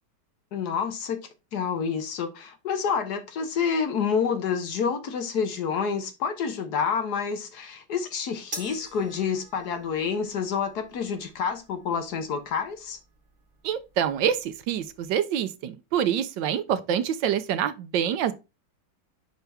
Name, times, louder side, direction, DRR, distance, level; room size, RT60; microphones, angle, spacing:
voice 1, 0.5-1.2 1.5-13.0, left 6 dB, 60° left, 1.4 m, -28 dB
sound 1, 8.5-15.1, right 2 dB, 25° right, 2.0 m, -47 dB
voice 2, 13.6-18.3, right 9 dB, 75° right, 1.3 m, -26 dB
5.8 x 5.7 x 3.4 m
omnidirectional pair, 2.0 m